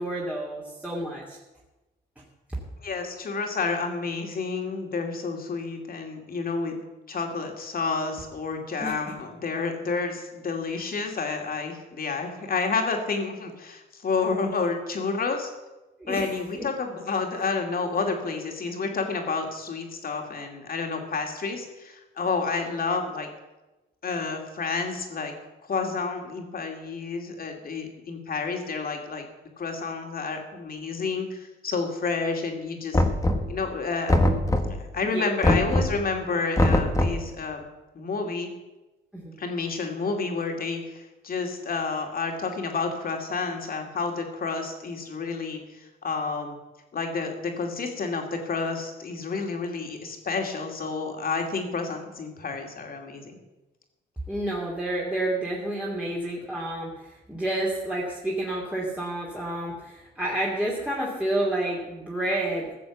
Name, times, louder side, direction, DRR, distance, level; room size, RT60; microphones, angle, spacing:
voice 1, 0.0-1.4 8.8-8.9 16.0-16.3 16.6-16.7 35.0-35.2 39.1-39.3 54.3-62.7, right 1 dB, 5° right, -5 dB, 2.5 m, -29 dB
voice 2, 2.8-6.8 7.1-15.5 16.1-23.3 24.0-25.3 25.6-29.3 29.6-33.0 33.5-34.2 34.8-37.7 37.9-38.5 39.4-46.6 46.9-53.4, left 4 dB, 45° left, 3 dB, 2.5 m, -30 dB
Knock, 32.9-33.7 34.1-34.9 35.4-36.1 36.6-37.3, left 1 dB, 15° left, 1.4 m, -22 dB
15.5 x 7.0 x 7.2 m, 1.1 s
cardioid pair, 90°, 20 cm